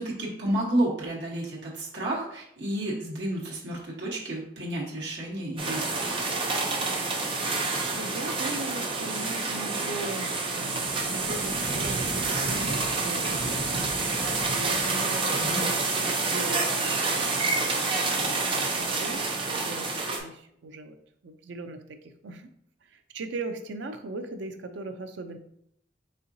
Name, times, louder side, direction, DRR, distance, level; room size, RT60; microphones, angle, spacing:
voice 1, 0.0-5.8 15.4-15.7, right 1 dB, 65° right, -5 dB, 1.2 m, -31 dB
sound 1, 5.6-20.2, right 3 dB, 30° right, 0.6 m, -28 dB
voice 2, 7.9-13.6 14.4-15.6 16.0-21.0 21.2-22.5 22.8-25.4, right 2 dB, 85° right, 7 dB, 0.5 m, -39 dB
4.3 x 3.6 x 2.7 m, 0.72 s
head